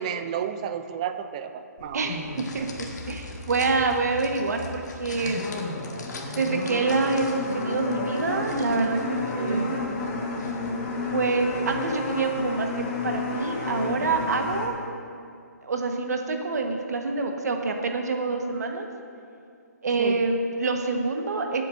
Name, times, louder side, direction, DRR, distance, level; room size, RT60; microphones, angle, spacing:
voice 1, 0.0-2.2 9.5-9.7 20.0-20.2, right 8 dB, 25° right, 9 dB, 0.4 m, -32 dB
sound 1, 1.8-13.2, left 3 dB, 80° left, 1.5 m, -46 dB
sound 2, 2.1-14.7, left 3 dB, 30° left, 1.4 m, -32 dB
voice 2, 2.5-5.5 6.4-9.9 11.1-14.8 15.6-18.9 19.8-21.6, right 3 dB, 70° right, 4 dB, 1.2 m, -26 dB
22.0 x 8.3 x 2.6 m, 2.5 s
hypercardioid pair, 165°, 9 cm